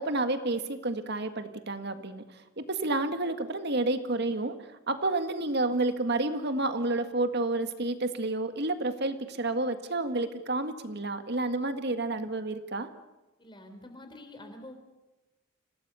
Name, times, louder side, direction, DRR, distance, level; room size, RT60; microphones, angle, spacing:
voice 1, 0.0-2.2 2.6-4.5 4.9-12.9, right 2 dB, 55° right, 9 dB, 1.8 m, -30 dB
voice 2, 13.4-14.7, left 1 dB, 25° left, 6 dB, 3.6 m, -47 dB
26.5 x 17.5 x 6.9 m, 1.0 s
head